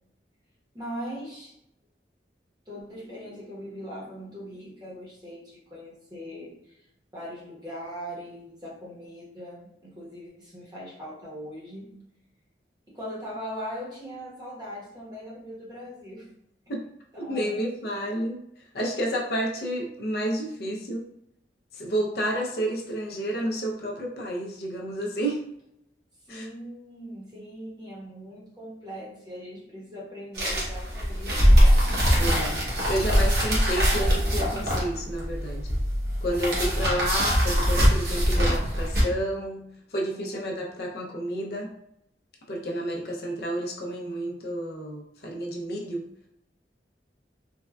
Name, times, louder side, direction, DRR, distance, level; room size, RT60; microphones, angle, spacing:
voice 1, 0.7-1.5 2.7-6.8 7.1-12.0 12.9-16.3 17.1-17.7 26.3-31.9 40.1-40.3, equal, 25° right, -6 dB, 0.9 m, -40 dB
voice 2, 17.2-18.4 18.7-21.0 21.7-25.4 26.3-26.5 32.2-35.7 36.2-41.7 42.5-46.0, right 1 dB, 60° left, -2 dB, 0.5 m, -30 dB
sound 1, 30.3-39.0, equal, 65° right, 0.9 m, -22 dB
3.4 x 2.2 x 2.2 m, 0.78 s
head